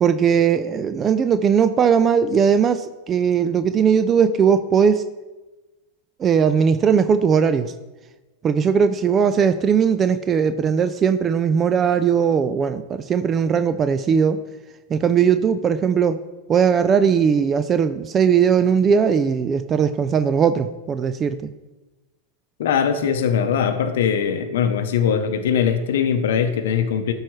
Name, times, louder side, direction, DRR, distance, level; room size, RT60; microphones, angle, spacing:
voice 1, 0.0-5.0 6.2-7.7 8.4-14.4 14.9-16.2 16.5-21.5, right 7 dB, 30° right, 11 dB, 0.4 m, -19 dB
voice 2, 22.6-27.1, left 7 dB, 70° left, 7 dB, 0.7 m, -21 dB
12.5 x 4.7 x 3.1 m, 1.1 s
hypercardioid pair, 105°, 0 cm